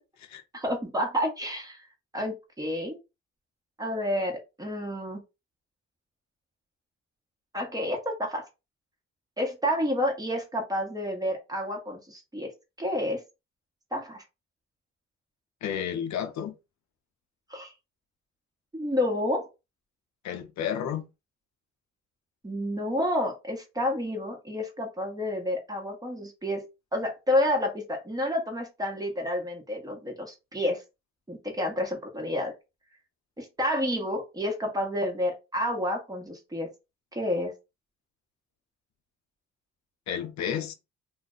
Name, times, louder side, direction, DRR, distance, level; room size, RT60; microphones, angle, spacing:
voice 1, 0.5-1.9 2.1-3.0 3.8-5.2 7.5-8.4 9.4-12.5 12.8-13.2 13.9-14.2 17.5-17.7 18.7-19.5 22.4-26.6 26.9-30.8 31.3-32.5 33.4-36.7 37.1-37.5, left 1 dB, 10° right, 1.1 m, -29 dB
voice 2, 15.6-16.6 20.2-21.1 40.1-40.7, left 9 dB, 65° left, 0.7 m, -31 dB
2.4 x 2.2 x 3.8 m
cardioid pair, 90°, 30 cm